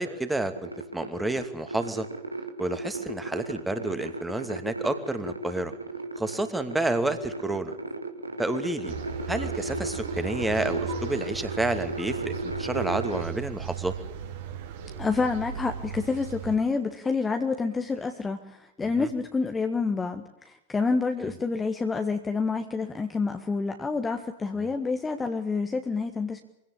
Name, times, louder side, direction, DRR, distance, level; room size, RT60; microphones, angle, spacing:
voice 1, 0.0-2.1 2.6-5.7 6.2-7.7 8.4-8.9 9.3-14.0 18.8-19.1 21.2-21.3 24.6-24.7, right 2 dB, 5° right, 9 dB, 2.6 m, -30 dB
sound 1, 0.6-13.2, right 2 dB, 85° right, 2.4 m, -35 dB
sound 2, 8.8-16.6, right 7 dB, 55° right, 3.9 m, -37 dB
voice 2, 15.0-26.4, left 4 dB, 15° left, 6 dB, 1.7 m, -28 dB
24.5 x 17.0 x 8.9 m, 0.87 s
figure-of-eight pair, 90°, 0 cm